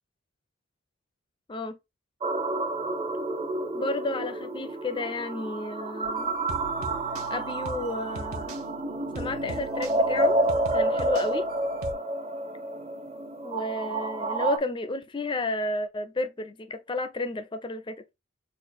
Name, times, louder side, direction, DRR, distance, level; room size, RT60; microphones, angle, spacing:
sound 1, 2.2-14.6, right 2 dB, 25° right, 0.6 m, -29 dB
voice 1, 3.7-6.4 7.3-8.7 9.1-10.4 10.7-11.5 13.4-18.0, left 2 dB, 20° left, 0.4 m, -32 dB
sound 2, 6.1-11.9, right 2 dB, 80° right, 0.9 m, -42 dB
3.8 x 2.4 x 4.6 m
head